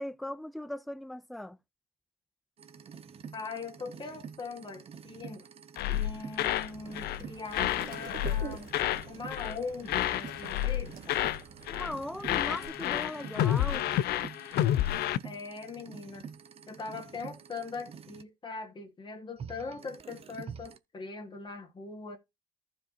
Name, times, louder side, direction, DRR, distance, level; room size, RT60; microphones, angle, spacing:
voice 1, 0.0-1.6 11.7-13.9, left 1 dB, ahead, 0.5 m, -38 dB
sound 1, 2.6-18.2 19.4-20.8, right 6 dB, 35° right, 0.7 m, -48 dB
voice 2, 3.3-5.5 5.9-8.7 9.1-11.2 15.2-16.3 16.7-22.2, left 4 dB, 30° left, 1.8 m, -41 dB
sound 2, 5.8-6.7 7.0-7.2 7.5-9.1 9.3-9.6 9.9-11.4 11.7-12.0 12.2-15.2, left 13 dB, 70° left, 0.5 m, -30 dB
sound 3, 6.7-12.7, right 7 dB, 55° right, 1.7 m, -47 dB
14.5 x 4.9 x 2.9 m
cardioid pair, 110°, 17 cm